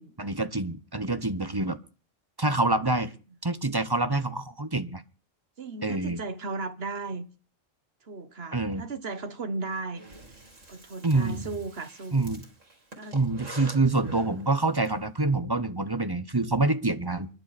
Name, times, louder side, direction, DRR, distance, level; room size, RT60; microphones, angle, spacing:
voice 1, 0.2-1.8 2.4-3.1 3.4-5.0 5.8-6.2 8.5-8.8 11.0-11.5 12.1-12.4 13.1-17.3, right 2 dB, 20° right, 0.9 m, -26 dB
voice 2, 5.6-7.3 8.0-10.0 10.7-12.2 13.0-13.2, right 3 dB, 50° right, 1.6 m, -36 dB
Breathing, 9.9-14.9, right 2 dB, 90° right, 4.3 m, -47 dB
28.5 x 11.5 x 4.2 m
omnidirectional pair, 1.3 m